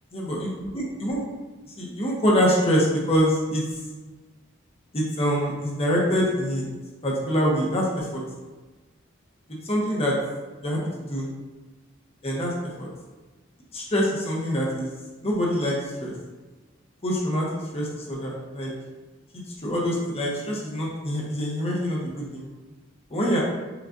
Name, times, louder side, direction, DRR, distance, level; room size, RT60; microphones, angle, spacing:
voice 1, 0.1-1.2 1.8-3.6 4.9-6.6 7.0-8.2 9.5-10.2 10.6-10.8 11.1-11.3 12.2-12.9 13.7-14.9 15.2-16.1 17.0-17.5 17.7-18.7 19.3-22.5 23.1-23.4, equal, 30° left, -3 dB, 0.9 m, -25 dB
5.8 x 2.4 x 2.6 m, 1.2 s
head